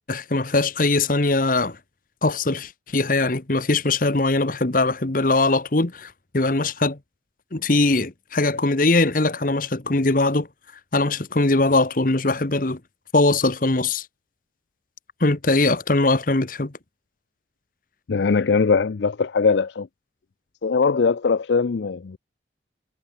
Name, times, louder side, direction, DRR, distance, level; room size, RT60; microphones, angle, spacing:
voice 1, 0.1-1.8 2.2-7.0 7.5-10.5 10.9-12.8 13.1-14.1 15.2-16.7, left 2 dB, 45° left, 1.2 m, -21 dB
voice 2, 18.1-19.9 20.6-22.2, left 5 dB, 70° left, 0.5 m, -21 dB
head